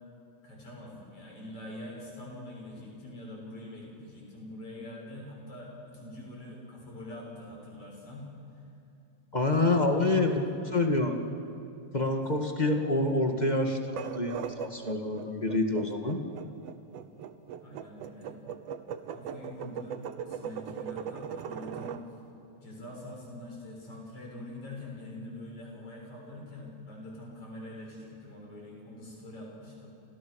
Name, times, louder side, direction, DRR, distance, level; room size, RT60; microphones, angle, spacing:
voice 1, 0.4-8.3 9.6-10.5 11.9-12.2 17.6-18.4 19.1-22.0 22.6-29.9, left 1 dB, 50° left, -2 dB, 7.9 m, -43 dB
voice 2, 9.3-10.3 10.7-11.2 11.9-16.2, left 2 dB, 20° left, 3 dB, 1.3 m, -27 dB
sound 1, 13.8-22.0, right 8 dB, 65° right, 1.9 m, -39 dB
30.0 x 28.5 x 6.4 m, 2.6 s
omnidirectional pair, 3.4 m